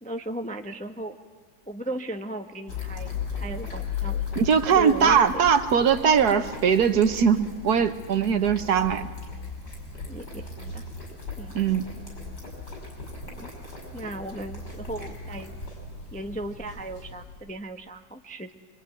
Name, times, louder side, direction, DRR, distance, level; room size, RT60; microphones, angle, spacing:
voice 1, 0.0-1.2 1.7-4.2 4.7-5.5 10.1-10.8 11.4-11.5 13.3-13.5 13.9-15.5 16.1-18.5, right 1 dB, 5° left, 5 dB, 0.7 m, -36 dB
sound 1, 2.7-17.5, left 5 dB, 65° left, 6.6 m, -37 dB
voice 2, 4.4-9.1 11.5-11.8, right 7 dB, 60° right, 10 dB, 1.5 m, -21 dB
25.0 x 25.0 x 9.3 m, 1.5 s
omnidirectional pair, 2.0 m